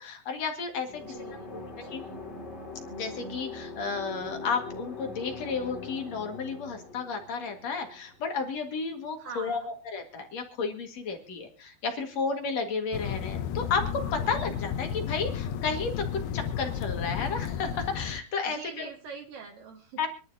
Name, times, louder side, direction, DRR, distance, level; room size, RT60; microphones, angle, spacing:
voice 1, 0.0-1.0 1.5-1.6 1.9-2.0 2.9-9.6 9.9-16.1 16.3-18.9 20.0-20.1, left 5 dB, 50° left, 4 dB, 2.6 m, -32 dB
sound 1, 0.8-8.5, left 3 dB, 30° left, 3.3 m, -42 dB
voice 2, 1.0-2.2 9.2-9.7 18.4-20.1, right 5 dB, 70° right, 2 dB, 3.0 m, -44 dB
sound 2, 12.9-18.2, left 8 dB, 80° left, 2.7 m, -33 dB
26.0 x 11.5 x 2.7 m, 0.34 s
omnidirectional pair, 4.5 m